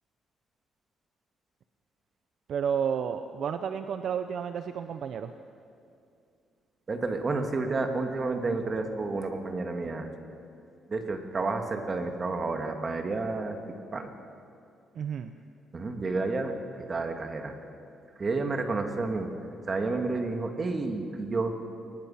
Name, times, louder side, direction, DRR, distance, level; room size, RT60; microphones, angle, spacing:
voice 1, 2.5-5.3 14.9-15.3, right 7 dB, 65° right, 9 dB, 0.8 m, -31 dB
voice 2, 6.9-10.1 10.9-14.1 15.7-17.6 18.2-19.3 19.7-21.6, right 3 dB, 35° right, 4 dB, 2.4 m, -30 dB
23.0 x 20.0 x 5.8 m, 2.5 s
cardioid pair, 90°, 0 cm